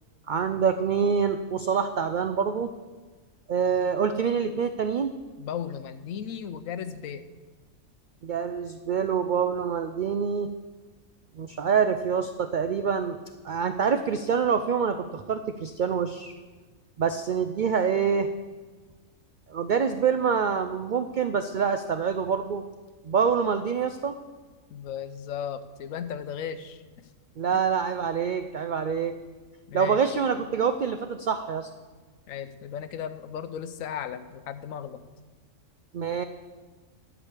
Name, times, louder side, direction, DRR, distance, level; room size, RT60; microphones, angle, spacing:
voice 1, 0.3-2.7 3.5-5.1 8.2-10.5 11.4-13.2 13.4-16.3 17.0-18.3 19.5-22.6 23.0-24.1 27.4-29.1 29.7-31.7 35.9-36.2, right 6 dB, 80° right, 9 dB, 0.4 m, -26 dB
voice 2, 5.4-7.3 24.7-27.1 29.7-30.0 32.3-35.0, left 8 dB, 80° left, 12 dB, 1.1 m, -36 dB
11.0 x 5.1 x 8.2 m, 1.3 s
omnidirectional pair, 1.4 m